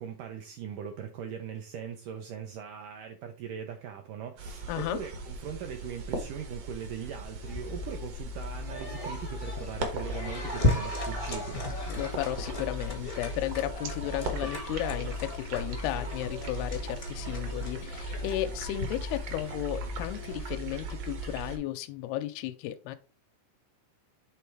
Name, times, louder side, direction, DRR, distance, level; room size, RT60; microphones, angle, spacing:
voice 1, 0.0-11.6, right 8 dB, 75° right, 2.0 m, -40 dB
sound 1, 4.4-21.6, right 3 dB, 60° right, 1.8 m, -39 dB
voice 2, 4.7-5.0 11.9-23.0, left 14 dB, 90° left, 2.5 m, -34 dB
sound 2, 7.4-20.3, left 2 dB, 30° left, 0.6 m, -35 dB
8.5 x 3.4 x 4.6 m
omnidirectional pair, 4.4 m